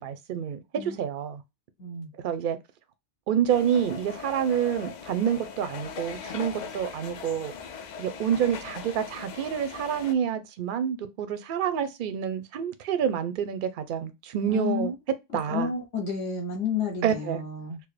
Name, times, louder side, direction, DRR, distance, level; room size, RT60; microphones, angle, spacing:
voice 1, 0.0-1.4 2.2-2.6 3.3-7.5 8.0-14.9 15.3-15.7 17.0-17.4, right 8 dB, 55° right, 0.6 m, -28 dB
voice 2, 1.8-2.1 14.5-14.9 15.5-17.8, left 5 dB, 60° left, 1.2 m, -30 dB
sound 1, 3.5-10.1, left 6 dB, 85° left, 0.4 m, -40 dB
4.5 x 2.0 x 3.2 m
omnidirectional pair, 1.3 m